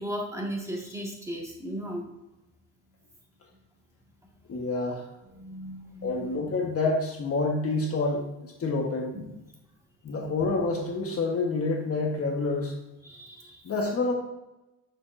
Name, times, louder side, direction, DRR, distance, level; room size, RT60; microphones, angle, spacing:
voice 1, 0.0-2.0 5.3-6.3 9.1-9.2 13.0-13.6, equal, 10° right, -2 dB, 1.8 m, -36 dB
voice 2, 4.5-5.1 6.0-9.1 10.0-12.8 13.6-14.1, left 3 dB, 45° left, 1 dB, 1.3 m, -28 dB
6.9 x 6.2 x 2.6 m, 0.97 s
cardioid pair, 105°, 34 cm